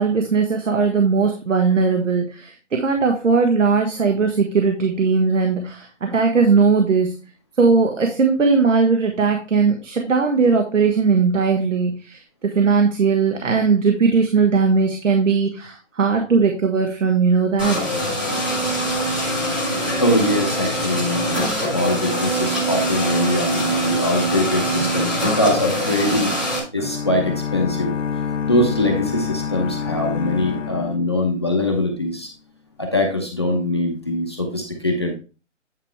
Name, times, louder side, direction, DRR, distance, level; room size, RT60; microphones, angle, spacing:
voice 1, 0.0-7.2 7.6-17.8 24.8-24.9, right 5 dB, 80° right, 3 dB, 1.5 m, -18 dB
sound 1, 17.6-26.6, right 1 dB, 10° right, 0.8 m, -23 dB
voice 2, 20.0-26.3 26.7-28.0 28.4-32.3 32.8-35.1, left 1 dB, 20° left, 2 dB, 0.7 m, -22 dB
sound 2, 26.8-31.8, left 7 dB, 75° left, 1.0 m, -27 dB
9.6 x 4.9 x 3.3 m, 0.33 s
hypercardioid pair, 175°, 37 cm